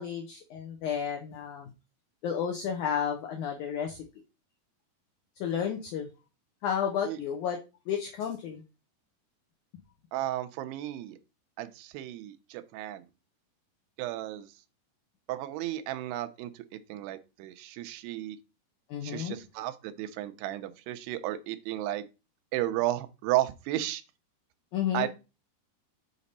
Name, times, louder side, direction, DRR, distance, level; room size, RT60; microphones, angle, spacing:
voice 1, 0.0-1.7 2.2-4.0 5.4-6.1 6.6-7.6 7.9-8.6 18.9-19.4 24.7-25.1, left 8 dB, 80° left, 2 dB, 1.7 m, -32 dB
voice 2, 10.1-11.2 11.6-13.1 14.0-14.5 15.3-18.4 19.0-22.0 22.5-24.0 24.9-25.1, right 14 dB, 90° right, 11 dB, 2.7 m, -33 dB
6.9 x 5.0 x 4.1 m, 0.29 s
omnidirectional pair, 4.6 m